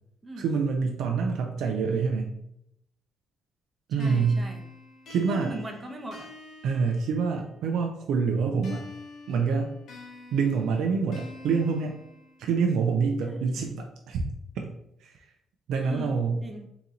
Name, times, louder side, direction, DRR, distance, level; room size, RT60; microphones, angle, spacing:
voice 1, 0.4-2.4 3.9-4.4 5.1-5.6 6.6-8.9 9.3-9.7 10.3-12.0 12.4-14.2 14.6-14.7 15.0-15.1 15.7-16.4, right 5 dB, 80° right, 3 dB, 0.5 m, -26 dB
voice 2, 3.9-4.6 5.3-6.3 13.3-13.8 15.8-16.1 16.4-16.7, right 1 dB, 25° right, 3 dB, 0.8 m, -39 dB
sound 1, 4.0-7.6 8.6-12.6, left 2 dB, 70° left, 1.1 m, -47 dB
4.0 x 2.9 x 3.7 m, 0.78 s
cardioid pair, 90°, 0 cm